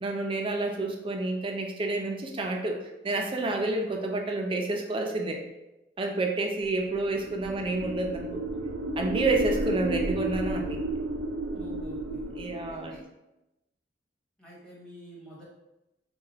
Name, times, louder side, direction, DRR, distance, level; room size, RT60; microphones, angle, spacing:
voice 1, 0.0-5.4 6.0-8.2 9.0-10.8 12.4-12.9, right 2 dB, 30° right, 3 dB, 0.4 m, -29 dB
sound 1, 6.9-13.0, right 2 dB, 80° right, 0.5 m, -32 dB
voice 2, 11.5-12.3 12.7-13.0 14.4-15.4, left 1 dB, 5° left, -6 dB, 0.9 m, -48 dB
3.9 x 2.3 x 4.1 m, 0.96 s
head